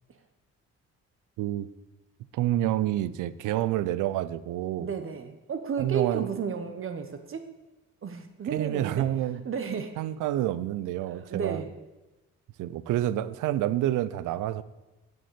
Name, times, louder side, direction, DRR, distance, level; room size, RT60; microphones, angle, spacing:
voice 1, 2.3-4.9 5.8-6.3 8.5-9.4 10.0-11.6 12.6-14.6, right 13 dB, 90° right, 0.6 m, -28 dB
voice 2, 4.8-7.5 8.0-9.1 9.4-10.0 11.0-11.7, right 6 dB, 45° right, 1.0 m, -33 dB
8.8 x 6.5 x 8.4 m
cardioid pair, 90°, 30 cm